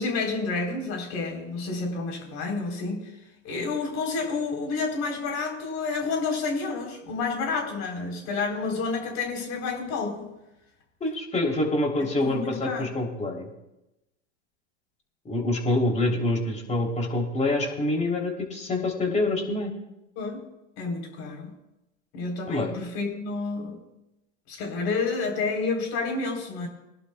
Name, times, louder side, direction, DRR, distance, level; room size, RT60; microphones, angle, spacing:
voice 1, 0.0-3.1 3.4-10.3 12.2-12.9 20.2-20.4 20.8-21.5 22.1-23.8 24.5-26.7, left 4 dB, 40° left, 1 dB, 3.9 m, -29 dB
voice 2, 11.0-13.5 15.3-19.7 22.5-22.7, left 2 dB, 15° left, 1 dB, 3.3 m, -26 dB
22.5 x 11.5 x 2.3 m, 0.94 s
hypercardioid pair, 115°, 39 cm